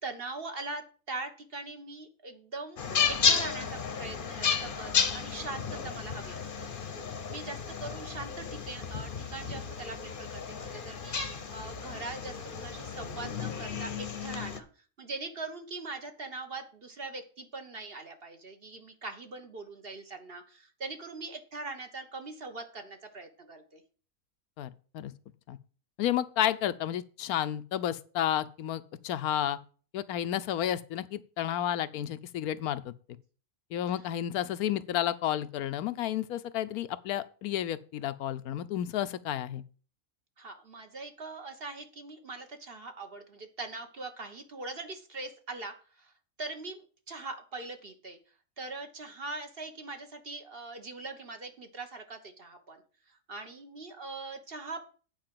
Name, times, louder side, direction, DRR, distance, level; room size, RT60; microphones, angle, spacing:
voice 1, 0.0-2.8 3.1-6.7 7.3-14.7 15.0-23.8 40.4-46.1 46.4-48.2 48.6-52.8 53.1-54.8, right 3 dB, 40° right, 1.4 m, -42 dB
sound 1, 2.8-14.6, left 6 dB, 40° left, 0.9 m, -33 dB
voice 2, 24.6-25.1 25.5-25.6 26.0-29.6 29.9-32.9 33.7-39.6, left 11 dB, 85° left, 1.1 m, -31 dB
9.0 x 4.7 x 7.6 m
omnidirectional pair, 1.5 m